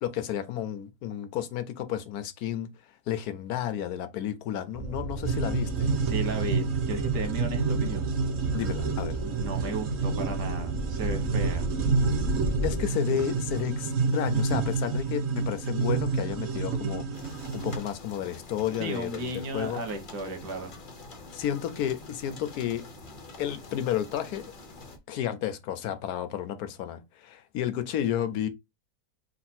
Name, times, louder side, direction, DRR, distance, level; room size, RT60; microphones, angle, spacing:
voice 1, 0.0-2.7 3.1-5.9 8.5-9.2 12.6-17.1 17.5-19.8 21.3-22.9 23.4-24.5 25.1-28.5, left 10 dB, 75° left, 1.2 m, -32 dB
sound 1, 4.7-12.9, right 2 dB, 40° right, 0.7 m, -34 dB
sound 2, 5.2-17.8, right 4 dB, 60° right, 1.2 m, -29 dB
voice 2, 6.0-8.1 9.2-11.6 18.8-20.7, right 2 dB, 85° right, 1.7 m, -34 dB
sound 3, 17.1-25.0, left 3 dB, 45° left, 0.7 m, -46 dB
4.1 x 2.3 x 4.2 m
omnidirectional pair, 1.7 m